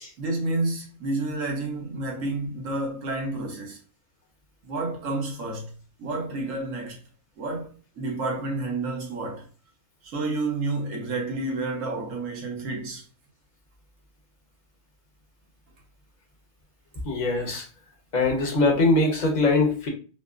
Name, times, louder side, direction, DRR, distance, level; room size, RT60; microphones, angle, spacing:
voice 1, 0.2-3.8 4.6-5.7 6.0-7.0 7.4-9.5 10.1-13.0, right 2 dB, 65° right, 1.4 m, -30 dB
voice 2, 17.1-17.6 18.1-19.9, left 2 dB, 35° left, 0.9 m, -22 dB
5.5 x 2.1 x 2.4 m
omnidirectional pair, 1.5 m